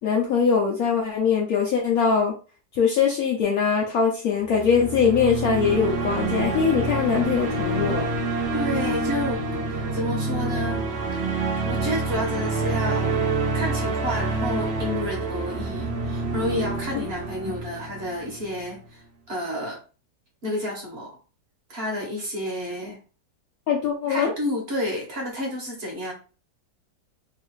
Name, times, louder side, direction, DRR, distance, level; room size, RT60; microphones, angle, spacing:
voice 1, 0.0-2.3 2.8-8.1 16.9-17.0 23.7-24.3, left 6 dB, 65° left, -1 dB, 1.0 m, -22 dB
sound 1, 4.4-18.6, right 3 dB, 60° right, 0.6 m, -27 dB
voice 2, 8.5-11.2 11.7-13.2 13.5-19.0 19.3-19.8 20.4-21.1 21.7-23.0 24.1-26.1, left 1 dB, 45° right, -1 dB, 1.0 m, -30 dB
3.1 x 2.4 x 3.0 m, 0.35 s
omnidirectional pair, 1.9 m